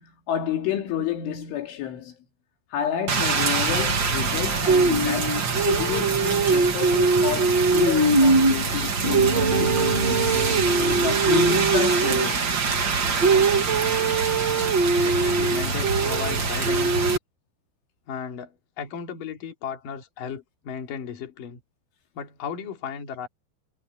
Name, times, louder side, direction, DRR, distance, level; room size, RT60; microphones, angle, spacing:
voice 1, 0.0-2.2 2.7-10.4 10.8-12.5, left 9 dB, 75° left, 5.1 m, -30 dB
Rain, 3.1-17.2, right 4 dB, 75° right, 1.0 m, -21 dB
sound 1, 9.0-13.1, right 1 dB, 10° right, 7.4 m, -30 dB
voice 2, 15.0-17.1 18.1-21.6 22.1-23.3, left 7 dB, 45° left, 4.4 m, -35 dB
omnidirectional pair, 5.6 m